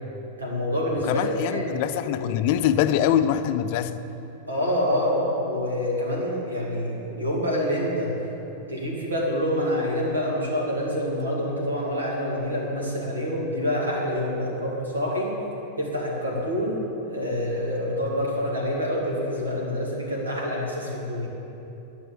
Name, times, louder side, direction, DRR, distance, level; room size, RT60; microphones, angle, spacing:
voice 1, 0.4-1.7 2.0-2.3 4.5-8.2 8.7-15.4 15.8-21.3, equal, 80° right, -3 dB, 2.5 m, -27 dB
voice 2, 1.0-4.0, left 10 dB, 50° left, 11 dB, 0.5 m, -23 dB
12.0 x 6.1 x 8.1 m, 2.9 s
figure-of-eight pair, 90°, 0 cm